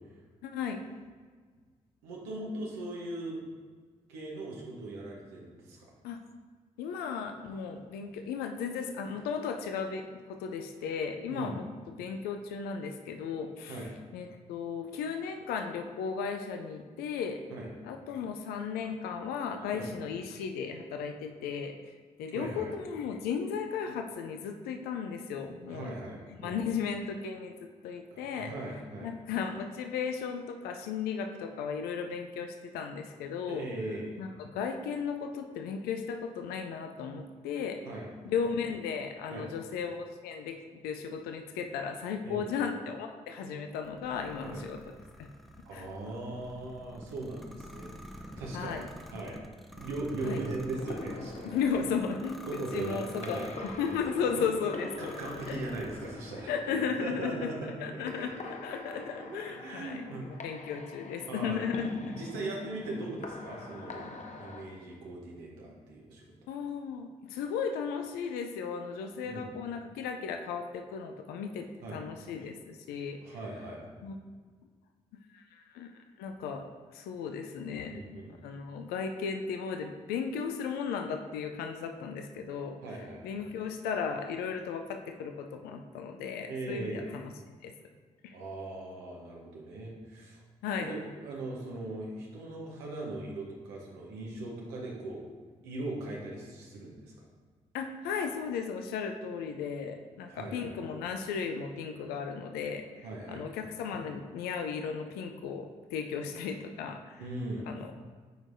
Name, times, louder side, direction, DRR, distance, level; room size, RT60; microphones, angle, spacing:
voice 1, 0.4-0.8 6.0-6.2 6.8-11.6 12.0-13.8 14.1-17.4 17.8-21.8 22.2-25.9 26.4-27.5 27.8-28.5 29.0-33.7 34.2-37.8 38.2-40.6 40.8-44.8 45.2-45.3 45.7-45.9 48.5-48.9 50.2-50.4 51.4-55.1 55.5-55.6 56.5-57.5 57.8-61.9 66.5-73.2 74.0-74.2 75.3-75.9 76.2-76.7 76.9-77.9 78.4-82.8 83.2-87.2 87.6-87.7 88.2-88.4 90.6-90.9 97.7-107.2 107.7-108.0, left 6 dB, 80° left, 5 dB, 0.4 m, -35 dB
voice 2, 2.0-3.4 4.1-5.9 11.3-11.6 13.7-13.9 17.5-17.7 19.7-19.9 22.3-22.7 25.7-26.6 28.1-29.1 33.5-34.2 37.8-38.1 39.3-39.5 42.2-42.4 44.5-44.6 45.6-49.4 49.8-51.6 52.5-54.0 54.3-54.4 55.0-60.3 61.3-61.6 61.9-66.4 69.2-69.5 71.8-72.0 73.2-73.8 77.9-78.3 82.8-83.2 86.5-87.1 88.3-90.4 90.8-95.2 95.6-97.3 100.3-100.8 103.0-103.5 107.2-107.7, right 2 dB, 90° right, -2 dB, 1.0 m, -39 dB
sound 1, 43.8-54.1 54.7-56.4, equal, ahead, 0.7 m, -49 dB
sound 2, 50.8-64.6, left 3 dB, 45° left, 0.8 m, -44 dB
7.9 x 4.7 x 2.6 m, 1.5 s
hypercardioid pair, 40°, 16 cm